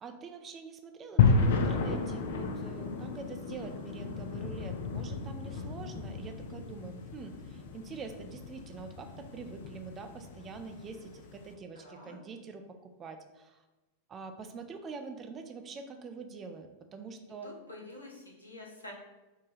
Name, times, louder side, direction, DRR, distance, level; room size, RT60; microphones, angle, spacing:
voice 1, 0.0-13.6 14.1-17.5, right 4 dB, 25° right, 6 dB, 0.4 m, -45 dB
sound 1, 1.2-11.4, left 5 dB, 60° left, 0.4 m, -32 dB
voice 2, 11.7-12.2 17.4-18.9, left 2 dB, 80° left, -1 dB, 0.7 m, -48 dB
4.8 x 2.2 x 2.9 m, 1.1 s
figure-of-eight pair, 90°, 0 cm